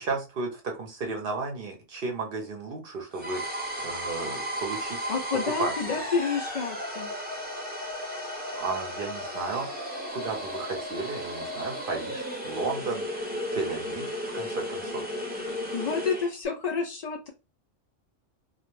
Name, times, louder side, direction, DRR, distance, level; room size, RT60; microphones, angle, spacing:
voice 1, 0.0-5.1 5.6-5.7 8.5-9.7 10.1-13.0 13.5-15.1, right 4 dB, 55° right, 2 dB, 0.7 m, -34 dB
sound 1, 3.1-16.3, equal, 10° right, 0.5 m, -34 dB
voice 2, 5.1-7.1 15.7-17.3, left 5 dB, 70° left, 3 dB, 0.3 m, -29 dB
2.2 x 2.1 x 3.0 m, 0.28 s
omnidirectional pair, 1.3 m